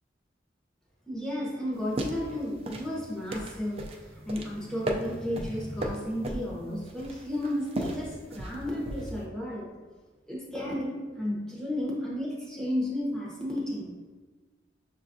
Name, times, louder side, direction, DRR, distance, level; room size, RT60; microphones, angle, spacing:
voice 1, 1.1-9.7 10.3-13.9, left 1 dB, 5° left, -5 dB, 0.8 m, -33 dB
sound 1, 1.7-9.2, right 1 dB, 35° right, 0.4 m, -37 dB
6.1 x 2.4 x 2.6 m, 1.3 s
head